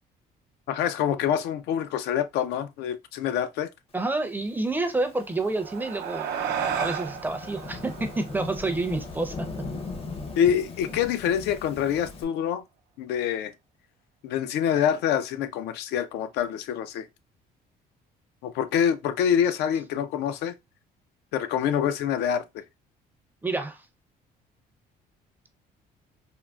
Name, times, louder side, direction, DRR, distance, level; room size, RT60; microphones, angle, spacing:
voice 1, 0.7-3.7 10.4-12.6 13.0-13.5 14.2-17.1 18.4-20.5 21.3-22.6, left 9 dB, 80° left, 0.4 m, -26 dB
voice 2, 3.9-6.3 6.7-9.5 23.4-23.8, right 2 dB, 10° right, 0.5 m, -28 dB
Thunderstorm / Rain, 4.5-12.2, left 3 dB, 35° left, 0.6 m, -39 dB
sound 1, 5.3-10.0, right 8 dB, 75° right, 0.5 m, -34 dB
3.6 x 2.1 x 2.3 m
cardioid pair, 110°, 17 cm